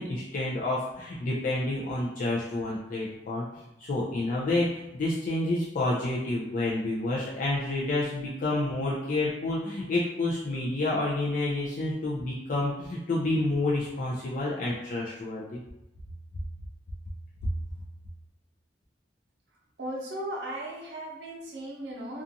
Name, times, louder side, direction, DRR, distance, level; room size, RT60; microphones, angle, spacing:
voice 1, 0.0-15.6, left 2 dB, 50° left, -6 dB, 0.4 m, -29 dB
voice 2, 19.8-22.2, right 1 dB, 75° right, -3 dB, 0.7 m, -36 dB
2.5 x 2.3 x 2.6 m, 0.90 s
head